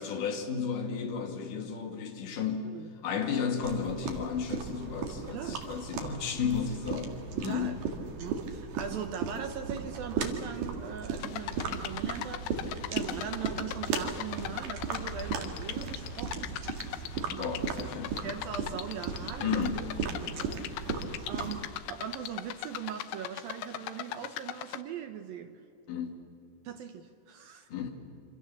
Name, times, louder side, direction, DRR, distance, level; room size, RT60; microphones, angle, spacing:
voice 1, 0.0-2.7 3.0-7.8 17.4-18.2 19.4-19.9 25.9-26.2 27.7-27.9, left 6 dB, 50° left, 4 dB, 3.4 m, -33 dB
sound 1, 3.6-21.6, right 5 dB, 50° right, 3.2 m, -36 dB
voice 2, 5.2-5.6 7.4-7.8 8.2-17.9 18.2-19.9 20.2-25.6 26.6-27.7, right 8 dB, 75° right, 6 dB, 2.1 m, -41 dB
sound 2, 11.2-24.8, left 13 dB, 75° left, 2.5 m, -39 dB
sound 3, 15.2-15.9, equal, 25° right, 7.9 m, -48 dB
27.5 x 26.0 x 7.2 m, 2.6 s
omnidirectional pair, 5.5 m